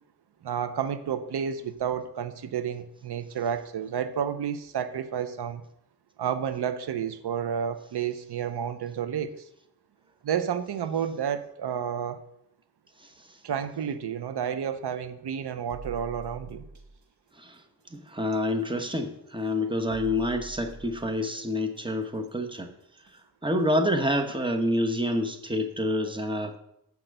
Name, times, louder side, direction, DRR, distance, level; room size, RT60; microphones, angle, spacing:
voice 1, 0.4-5.6 6.2-9.3 10.2-12.2 13.4-16.7, right 8 dB, 90° right, 11 dB, 0.6 m, -31 dB
sound 1, 15.7-17.0 18.8-19.0 19.9-21.2 23.1-23.2 23.7-23.8, right 2 dB, 45° right, 1.1 m, -44 dB
voice 2, 17.9-22.7 23.4-26.6, left 1 dB, 15° right, 5 dB, 1.1 m, -27 dB
7.3 x 5.9 x 6.5 m, 0.78 s
wide cardioid pair, 70°, 38 cm